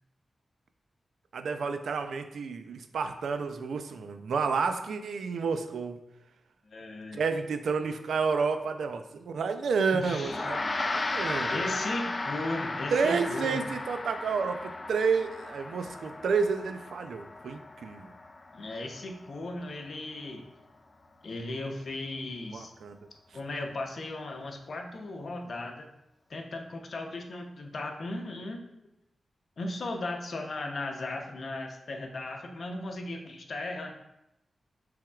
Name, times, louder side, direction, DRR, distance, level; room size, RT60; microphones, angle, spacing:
voice 1, 1.3-6.0 7.1-10.6 10.8-11.6 12.9-18.1 22.5-23.0, right 5 dB, 90° right, 8 dB, 0.4 m, -30 dB
voice 2, 6.6-7.2 9.9-11.0 11.5-13.7 18.5-20.4 21.2-22.7 23.3-25.9 26.3-28.6 29.6-33.9, left 2 dB, 65° left, 3 dB, 0.7 m, -37 dB
Gong, 10.2-19.9, left 2 dB, 40° left, 0.4 m, -35 dB
5.7 x 3.5 x 2.3 m, 0.86 s
cardioid pair, 65°, 0 cm